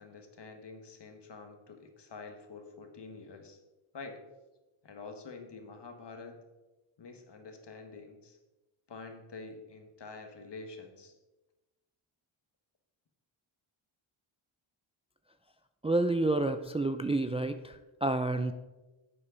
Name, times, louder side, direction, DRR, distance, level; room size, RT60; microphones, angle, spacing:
voice 1, 0.0-3.6 3.9-4.2 4.8-6.4 7.0-8.4 8.9-11.1, left 4 dB, 55° left, 5 dB, 1.6 m, -47 dB
voice 2, 15.8-18.5, right 2 dB, 15° right, 8 dB, 0.4 m, -29 dB
10.0 x 7.8 x 3.9 m, 1.1 s
cardioid pair, 75°, 50 cm